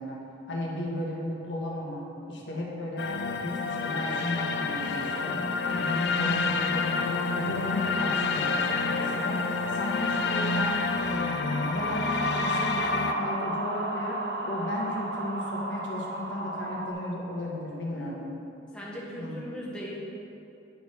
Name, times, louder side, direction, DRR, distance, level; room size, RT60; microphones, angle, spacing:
voice 1, 0.0-18.2 19.2-19.4, left 1 dB, 85° left, -3 dB, 1.4 m, -35 dB
sound 1, 3.0-13.1, left 4 dB, 65° left, 0.4 m, -28 dB
sound 2, 3.9-16.9, right 2 dB, 65° right, 0.7 m, -36 dB
voice 2, 18.7-19.9, equal, 5° left, -6 dB, 1.1 m, -39 dB
9.1 x 4.4 x 4.9 m, 2.8 s
head